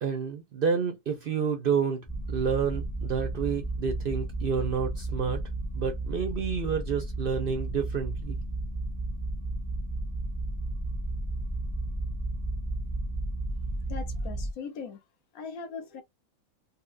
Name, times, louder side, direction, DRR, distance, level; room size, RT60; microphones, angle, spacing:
voice 1, 0.0-5.4 5.7-8.4, right 6 dB, 65° right, 0.5 m, -29 dB
sound 1, 2.1-14.5, right 2 dB, 20° left, 0.5 m, -33 dB
voice 2, 13.9-15.0 15.3-16.0, left 5 dB, 70° left, 1.2 m, -39 dB
4.1 x 2.2 x 2.4 m
omnidirectional pair, 1.6 m